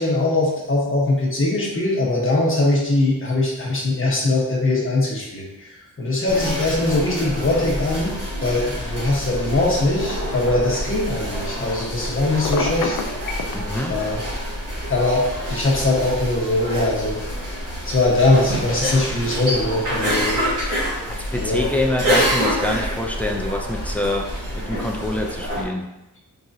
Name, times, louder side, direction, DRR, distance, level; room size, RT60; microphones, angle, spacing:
voice 1, 0.0-13.0 13.9-14.2 14.9-17.2 17.8-20.4 21.4-21.7, left 2 dB, 35° left, -4 dB, 1.2 m, -21 dB
sound 1, 6.3-25.6, equal, 40° right, 1.4 m, -27 dB
Telephone, 12.4-13.6, left 5 dB, 65° left, 0.6 m, -25 dB
voice 2, 13.5-14.0 21.1-25.9, left 1 dB, 5° left, 1 dB, 0.4 m, -26 dB
4.7 x 3.7 x 2.7 m, 0.94 s
wide cardioid pair, 150°, 36 cm